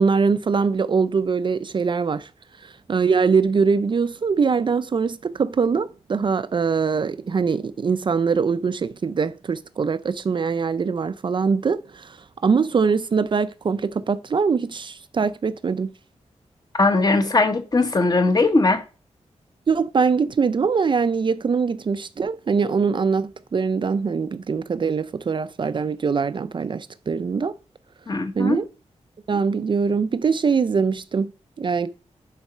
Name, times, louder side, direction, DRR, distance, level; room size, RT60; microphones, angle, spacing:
voice 1, 0.0-2.3 2.6-12.2 12.4-15.9 19.7-27.5 28.4-28.7 29.3-31.3 31.6-31.9, right 5 dB, 45° right, 0.4 m, -22 dB
voice 2, 16.8-18.8 28.1-28.6, left 3 dB, 35° left, 1.1 m, -19 dB
10.5 x 4.0 x 5.5 m
wide cardioid pair, 175°, 12 cm